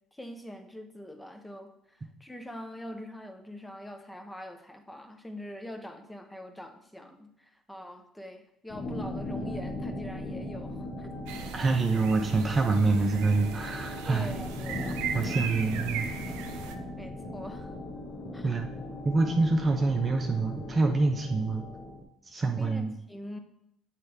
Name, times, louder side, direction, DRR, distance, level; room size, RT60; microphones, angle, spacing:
voice 1, 0.1-11.1 14.0-15.1 17.0-17.7 18.3-18.6 22.5-23.4, left 1 dB, 10° left, 6 dB, 0.9 m, -43 dB
sound 1, 8.7-22.0, left 1 dB, 40° left, 1.2 m, -38 dB
sound 2, 11.3-16.7, right 7 dB, 80° right, 0.6 m, -38 dB
voice 2, 11.5-14.3 15.1-16.1 18.4-18.7 19.0-21.6 22.3-22.9, right 3 dB, 35° right, 3 dB, 0.8 m, -26 dB
7.8 x 3.3 x 4.7 m, 0.78 s
supercardioid pair, 75°, 0 cm